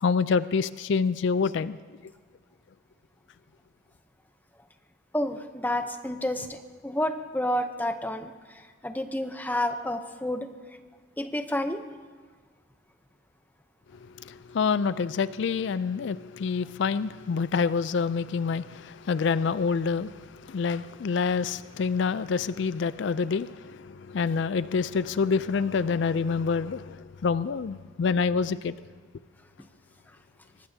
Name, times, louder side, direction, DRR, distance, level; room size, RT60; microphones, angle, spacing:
voice 1, 0.0-1.8 14.3-20.1 20.5-28.7, left 5 dB, 60° left, 0.4 m, -27 dB
voice 2, 5.1-6.6 6.8-8.3 8.8-10.5 11.2-11.8, left 1 dB, 10° left, 0.7 m, -29 dB
23.5 x 19.0 x 2.8 m
head